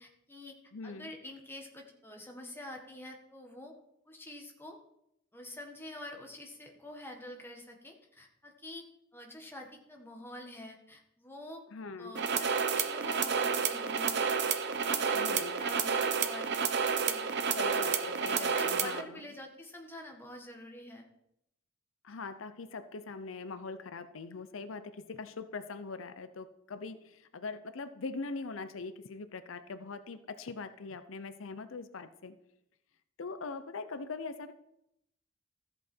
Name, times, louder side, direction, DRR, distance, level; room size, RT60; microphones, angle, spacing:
voice 1, 0.0-0.6 0.8-3.7 4.1-4.8 5.3-8.8 9.1-11.6 12.0-16.5 16.8-17.8 18.2-21.0, left 1 dB, 10° left, 2 dB, 1.5 m, -47 dB
voice 2, 0.7-1.1 11.7-12.1 15.1-15.6 17.5-19.2 22.0-32.4 33.2-34.5, left 4 dB, 75° left, 11 dB, 0.6 m, -42 dB
sound 1, 12.2-19.0, right 6 dB, 55° right, 0.8 m, -30 dB
14.0 x 7.8 x 4.4 m, 0.81 s
head